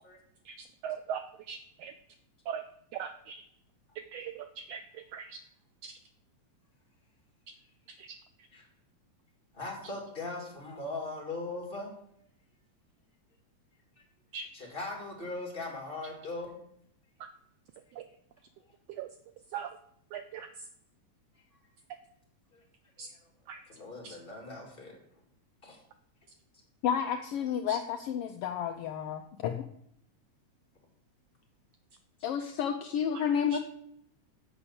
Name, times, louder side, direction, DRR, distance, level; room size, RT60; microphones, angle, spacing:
voice 1, 0.4-1.9 2.5-2.6 2.9-3.4 3.9-5.4 5.8-6.0 8.0-8.2 14.3-14.5 17.2-17.3 17.9-18.0 18.9-19.1 19.5-19.8 20.1-20.7 23.0-23.1 23.5-23.6 24.0-24.2 27.7-27.8 33.1-33.2 33.5-33.6, right 7 dB, 85° right, 9 dB, 1.4 m, -40 dB
voice 2, 9.5-12.0 14.5-16.6 22.5-22.6 23.0-23.2 23.7-25.0 25.6-25.8, left 2 dB, 20° left, -1 dB, 2.2 m, -39 dB
voice 3, 26.8-29.6 32.2-33.6, left 8 dB, 90° left, 6 dB, 1.2 m, -31 dB
7.1 x 6.9 x 7.0 m, 0.72 s
omnidirectional pair, 3.3 m